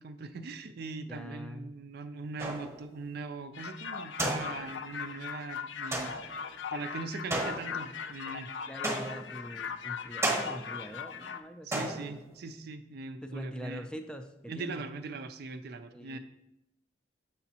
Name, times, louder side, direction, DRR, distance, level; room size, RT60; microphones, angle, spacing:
voice 1, 0.0-6.1 6.7-8.5 11.6-13.9 14.5-16.2, right 3 dB, 60° right, 9 dB, 0.4 m, -41 dB
voice 2, 1.1-1.7 8.7-11.9 13.2-14.8 15.9-16.2, equal, 5° left, 6 dB, 0.4 m, -43 dB
sound 1, 2.4-2.9 4.2-4.9 5.9-6.4 7.3-8.0 8.8-9.5 10.2-10.9 11.7-12.4, right 1 dB, 15° right, 1.0 m, -34 dB
sound 2, 3.5-11.4, left 6 dB, 85° left, 0.4 m, -39 dB
6.9 x 5.9 x 2.8 m, 0.84 s
head